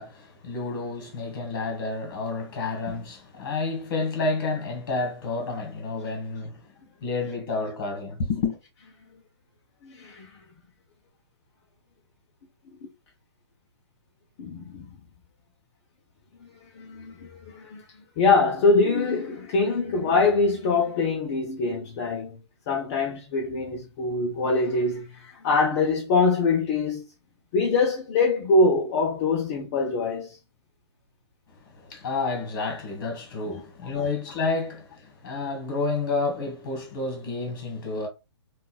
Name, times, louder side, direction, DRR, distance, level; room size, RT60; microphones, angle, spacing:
voice 1, 0.0-6.7 7.0-8.6 31.5-38.1, left 3 dB, 50° left, 1.4 m, -30 dB
voice 2, 9.8-10.3 14.4-14.9 16.8-17.8 18.2-22.4 22.7-27.0 27.5-30.4 33.9-34.0, left 3 dB, 30° left, 0.5 m, -24 dB
3.6 x 2.3 x 2.3 m
hypercardioid pair, 140°, 14 cm